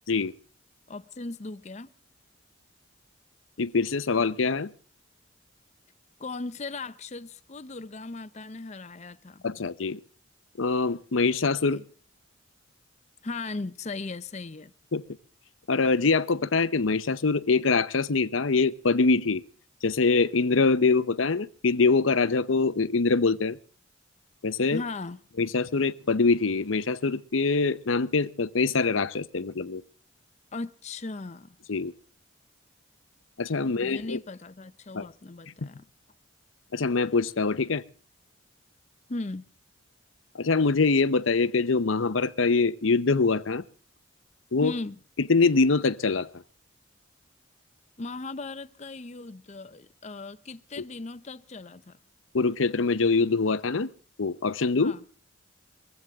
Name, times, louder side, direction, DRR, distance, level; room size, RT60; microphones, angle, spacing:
voice 1, 0.9-1.9 6.2-9.4 11.7-11.8 13.2-14.7 24.7-25.2 30.5-31.6 33.6-35.9 39.1-39.5 44.6-45.0 48.0-52.0 54.8-55.0, left 3 dB, 35° left, 0.6 m, -37 dB
voice 2, 3.6-4.7 9.4-10.0 10.6-11.8 14.9-15.0 15.7-19.4 19.8-23.6 24.4-24.8 25.4-29.8 31.7-31.9 33.4-34.2 34.9-35.1 36.7-37.8 40.3-43.6 44.5-44.7 45.2-46.3 52.3-53.9 54.2-55.0, left 4 dB, 80° left, 0.8 m, -24 dB
22.0 x 15.5 x 3.6 m
head